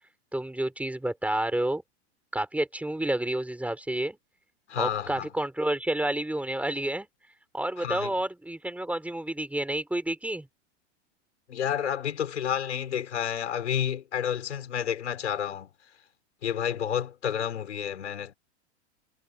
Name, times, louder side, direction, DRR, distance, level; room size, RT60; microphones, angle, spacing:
voice 1, 0.3-1.8 2.3-4.2 4.8-7.1 7.5-10.5, right 1 dB, 5° right, 7.0 m, -29 dB
voice 2, 4.7-5.3 7.8-8.1 11.5-15.7 16.4-18.3, left 9 dB, 75° left, 6.6 m, -30 dB
hypercardioid pair, 105°, 35 cm